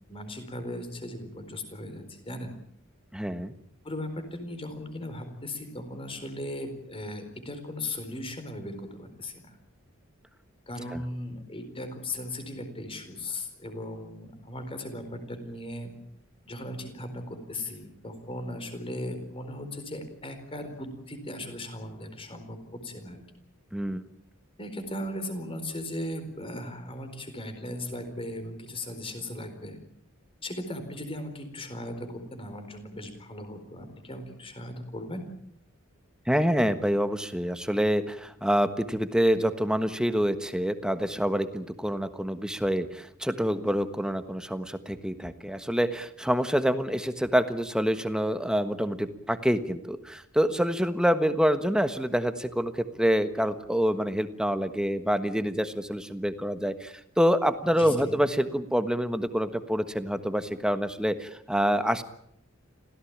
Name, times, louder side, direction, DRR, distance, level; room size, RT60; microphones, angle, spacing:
voice 1, 0.1-2.6 3.8-9.5 10.7-15.9 16.5-22.6 22.8-23.2 24.6-29.8 30.4-35.3 57.8-58.1, left 1 dB, 25° left, 7 dB, 4.3 m, -37 dB
voice 2, 3.1-3.5 10.9-11.0 23.7-24.0 36.3-62.0, equal, 5° right, 10 dB, 1.4 m, -26 dB
26.5 x 17.0 x 8.8 m, 0.70 s
head